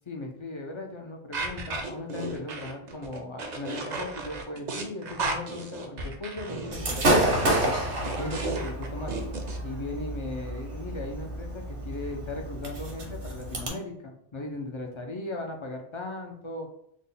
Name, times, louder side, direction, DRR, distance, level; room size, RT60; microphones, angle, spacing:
voice 1, 0.1-7.8 8.2-9.2 9.6-16.7, left 2 dB, 50° left, 1 dB, 0.3 m, -37 dB
sound 1, 1.3-9.6, right 3 dB, 50° right, 0.6 m, -35 dB
Gunshot gunfire / Fireworks, 6.7-13.7, right 1 dB, 80° right, 1.2 m, -29 dB
3.6 x 2.1 x 3.8 m, 0.71 s
omnidirectional pair, 1.1 m